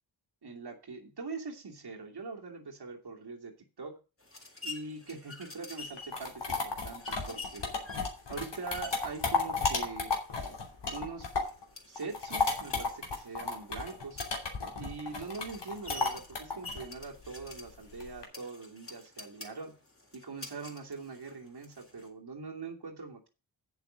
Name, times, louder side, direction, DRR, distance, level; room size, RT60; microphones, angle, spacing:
voice 1, 0.4-4.0 4.6-7.6 8.3-10.1 10.9-11.3 11.9-14.2 14.8-19.7 20.1-23.3, right 4 dB, 55° right, 0 dB, 2.7 m, -42 dB
sound 1, 4.2-22.1, left 3 dB, 30° left, 3.8 m, -49 dB
sound 2, 5.8-11.6 12.0-18.2, left 4 dB, 65° left, 2.9 m, -33 dB
8.0 x 7.0 x 6.4 m, 0.31 s
cardioid pair, 50°, 46 cm